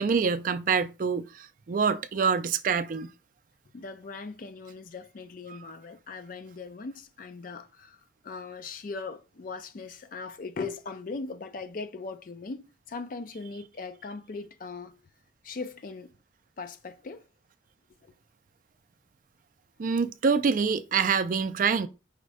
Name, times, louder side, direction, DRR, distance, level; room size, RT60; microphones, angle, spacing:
voice 1, 0.0-3.1 5.5-5.7 19.8-21.9, right 5 dB, 45° right, 0.4 m, -26 dB
voice 2, 3.7-14.9 15.4-16.1 16.6-17.2 18.0-18.1, left 4 dB, 45° left, 0.4 m, -39 dB
5.0 x 2.1 x 4.8 m
head